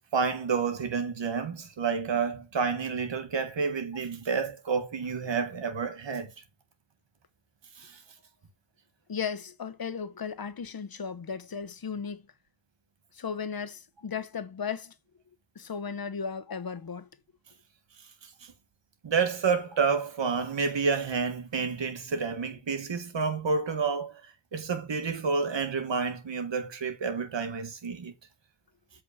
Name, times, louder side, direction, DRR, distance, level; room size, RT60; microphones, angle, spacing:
voice 1, 0.1-6.3 7.8-8.0 19.0-24.2 24.5-28.1, right 5 dB, 80° right, 1.7 m, -29 dB
voice 2, 9.1-12.2 13.1-14.9 15.5-17.1, left 6 dB, 55° left, 1.1 m, -35 dB
8.0 x 3.9 x 4.1 m
cardioid pair, 55°, 43 cm